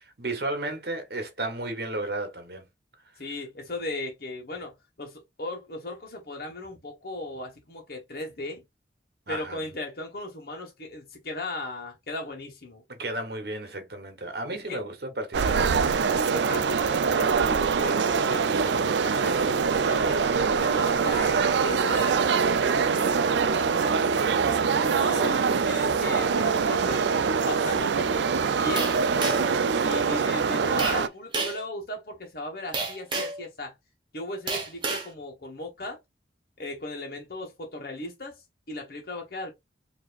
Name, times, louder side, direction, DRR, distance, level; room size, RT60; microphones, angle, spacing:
voice 1, 0.2-2.7 9.3-9.6 12.9-15.7, right 2 dB, 60° right, 1.1 m, -33 dB
voice 2, 3.2-8.6 9.3-12.8 14.5-14.8 16.2-20.3 20.6-23.9 24.7-27.0 27.4-28.1 28.6-29.0 29.8-33.7 34.1-36.0 36.6-38.3 38.7-39.5, left 2 dB, 55° left, 1.3 m, -37 dB
sound 1, 15.3-31.1, right 5 dB, 80° right, 0.4 m, -24 dB
sound 2, 28.8-29.6 30.8-31.0 31.3-31.6 32.7-33.4 34.5-35.1, right 3 dB, 25° right, 1.2 m, -30 dB
4.8 x 2.9 x 2.4 m
head